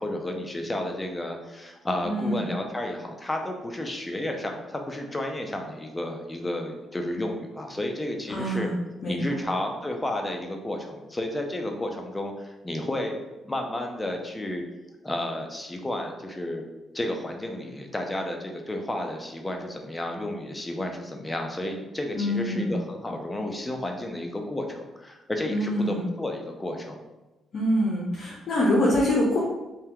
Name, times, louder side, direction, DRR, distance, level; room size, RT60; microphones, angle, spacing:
voice 1, 0.0-8.7 9.1-13.1 13.4-14.6 15.0-16.6 16.9-27.0, left 1 dB, 15° left, 3 dB, 0.5 m, -32 dB
voice 2, 2.0-2.4 8.3-8.7 9.0-9.4 22.1-22.7 25.5-26.0 27.5-29.4, left 1 dB, 60° left, -5 dB, 0.6 m, -25 dB
2.7 x 2.2 x 3.5 m, 1.1 s
cardioid pair, 90°, 0 cm